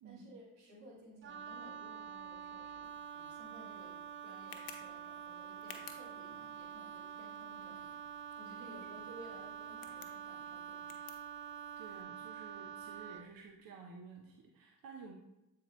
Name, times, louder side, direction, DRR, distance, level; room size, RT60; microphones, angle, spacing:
voice 1, 0.0-11.0, right 1 dB, 80° right, -3 dB, 2.4 m, -56 dB
Wind instrument woodwind instrument, 1.2-13.3, right 8 dB, 30° right, 0.4 m, -47 dB
Tick, 2.8-12.0, left 8 dB, 90° left, 0.9 m, -58 dB
voice 2, 11.8-15.1, right 5 dB, 55° right, 1 dB, 1.0 m, -53 dB
8.0 x 4.7 x 3.1 m, 0.95 s
supercardioid pair, 65°, 41 cm